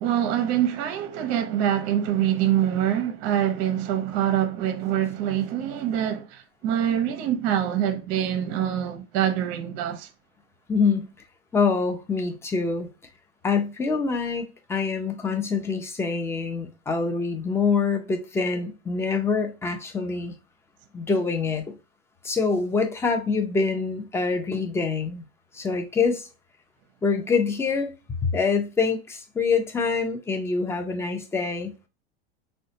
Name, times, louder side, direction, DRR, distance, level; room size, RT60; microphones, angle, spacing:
voice 1, 0.0-10.1, right 10 dB, 50° right, 0.6 m, -25 dB
voice 2, 10.7-11.1 11.5-12.9 13.4-20.3 20.9-21.8 22.2-25.2 25.5-26.3 27.0-27.9 28.2-31.7, left 4 dB, 10° left, 0.4 m, -25 dB
3.9 x 2.2 x 2.6 m
hypercardioid pair, 105°, 33 cm